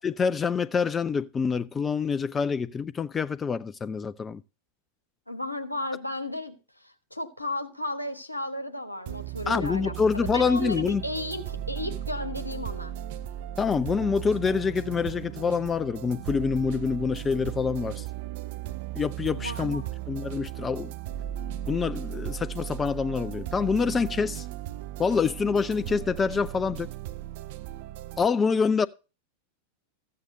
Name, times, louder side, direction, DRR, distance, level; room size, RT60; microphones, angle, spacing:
voice 1, 0.0-4.4 9.5-11.0 13.6-18.1 18.9-20.9 21.7-24.5 25.0-26.9 28.2-28.9, left 5 dB, 20° left, 0.4 m, -26 dB
voice 2, 5.3-6.6 7.1-10.0 10.3-12.9 19.4-19.9, left 1 dB, 85° left, 1.2 m, -34 dB
sound 1, 9.1-28.3, right 12 dB, 50° right, 0.5 m, -36 dB
14.5 x 8.6 x 2.7 m
figure-of-eight pair, 90°, 0 cm